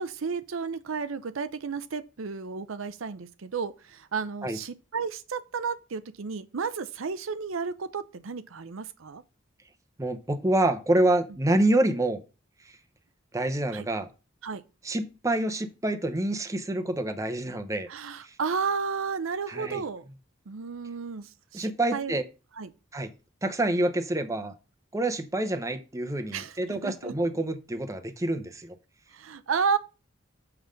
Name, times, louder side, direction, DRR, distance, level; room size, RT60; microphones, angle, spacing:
voice 1, 0.0-9.2 13.7-13.8 14.4-14.6 17.9-20.0 20.5-22.2 22.6-22.7 26.3-26.6 26.8-27.1 29.1-29.8, right 5 dB, 80° right, 0.6 m, -32 dB
voice 2, 10.0-12.2 13.3-14.1 14.8-17.9 18.2-18.3 19.5-19.8 21.5-22.2 22.9-23.1 23.4-24.5 24.9-28.7, right 1 dB, 15° right, 0.8 m, -27 dB
6.8 x 5.7 x 5.1 m
head